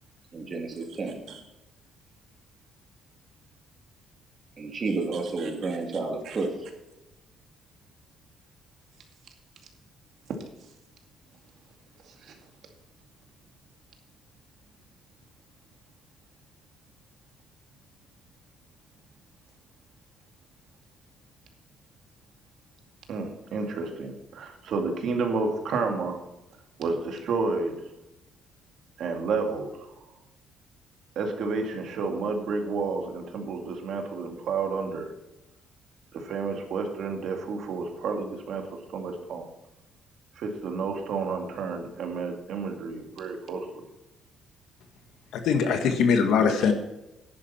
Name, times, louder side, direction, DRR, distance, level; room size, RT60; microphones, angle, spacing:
voice 1, 0.3-1.2 4.6-6.5, right 3 dB, 35° right, 2 dB, 2.8 m, -30 dB
voice 2, 5.1-5.5 6.2-6.4 10.3-10.4 12.1-12.4 23.1-26.2 26.8-27.7 29.0-29.7 31.2-35.1 36.1-39.5 40.4-43.9 46.6-46.7, right 4 dB, 65° right, 3 dB, 2.3 m, -31 dB
voice 3, 45.3-46.7, left 6 dB, 80° left, 6 dB, 1.7 m, -22 dB
10.5 x 10.5 x 4.4 m, 0.97 s
cardioid pair, 125°, 0 cm